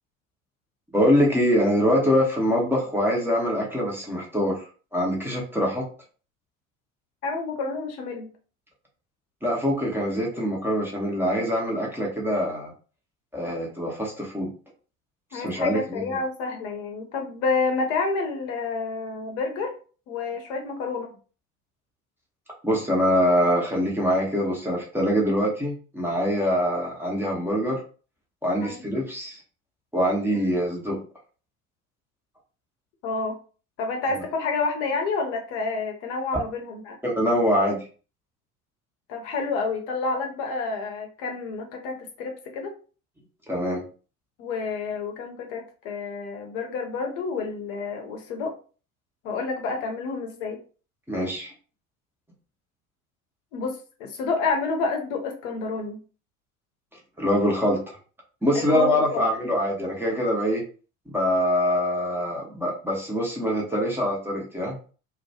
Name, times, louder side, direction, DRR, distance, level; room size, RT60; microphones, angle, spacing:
voice 1, 0.9-5.9 9.4-12.7 13.3-14.5 15.3-16.0 22.6-27.8 28.4-29.4 29.9-31.0 37.0-37.8 43.5-43.8 51.1-51.5 57.2-58.0 58.4-60.6 61.1-64.8, equal, 5° right, -3 dB, 0.7 m, -24 dB
voice 2, 7.2-8.3 15.3-19.7 20.1-21.1 28.6-28.7 30.3-30.5 33.0-33.3 33.8-37.0 39.1-42.7 44.4-48.5 49.2-50.6 53.5-56.0 58.5-59.3, left 4 dB, 55° left, 3 dB, 0.7 m, -29 dB
2.2 x 2.2 x 2.7 m, 0.38 s
figure-of-eight pair, 65°, 43 cm